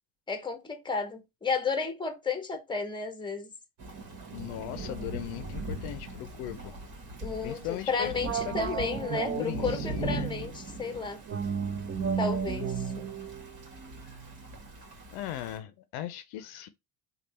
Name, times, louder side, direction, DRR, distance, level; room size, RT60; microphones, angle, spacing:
voice 1, 0.3-3.5 7.2-11.2 12.2-13.1, left 5 dB, 10° left, 0.9 m, -33 dB
Thunder / Rain, 3.8-15.6, right 2 dB, 50° right, 1.5 m, -41 dB
voice 2, 4.3-6.7 7.4-8.1 8.5-10.3 15.1-16.7, left 13 dB, 75° left, 0.6 m, -39 dB
sound 1, 8.2-10.5 11.3-14.6, right 7 dB, 35° right, 0.6 m, -34 dB
3.3 x 2.4 x 4.2 m
supercardioid pair, 85°, 39 cm